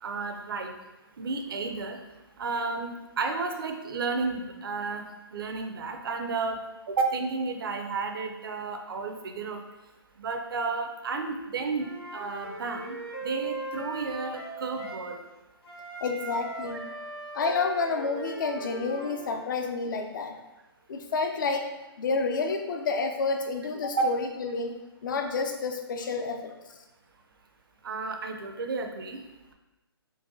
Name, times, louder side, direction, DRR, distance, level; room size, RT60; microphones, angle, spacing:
voice 1, 0.0-0.7 1.2-2.0 2.4-2.9 3.2-5.0 5.3-6.6 6.9-9.6 10.2-13.0 13.2-15.2 16.7-16.8 24.0-24.1 27.8-29.2, right 4 dB, 60° right, 5 dB, 0.5 m, -32 dB
Wind instrument woodwind instrument, 11.8-15.1 15.6-19.4, right 2 dB, 80° left, 1.0 m, -39 dB
voice 2, 16.0-16.9 17.3-20.4 20.9-21.7 22.0-24.7 25.0-26.5, left 4 dB, 50° left, 6 dB, 0.4 m, -29 dB
3.9 x 2.2 x 2.6 m, 1.0 s
figure-of-eight pair, 135°, 13 cm